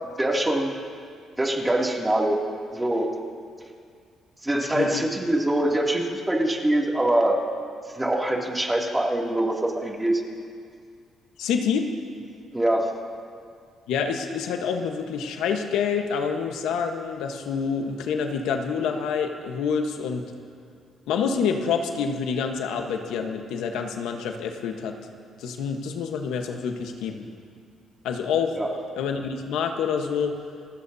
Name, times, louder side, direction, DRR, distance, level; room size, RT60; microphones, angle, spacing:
voice 1, 0.2-0.8 1.4-2.4 2.7-3.1 4.4-7.4 7.9-10.2 12.5-12.9 28.6-28.7, right 1 dB, 15° right, -1 dB, 2.6 m, -24 dB
voice 2, 11.4-11.9 13.9-20.3 21.1-25.0 25.4-27.3 28.0-28.6 29.0-30.4, left 6 dB, 90° left, 4 dB, 1.2 m, -27 dB
30.0 x 16.0 x 2.8 m, 2.2 s
cardioid pair, 90°, 0 cm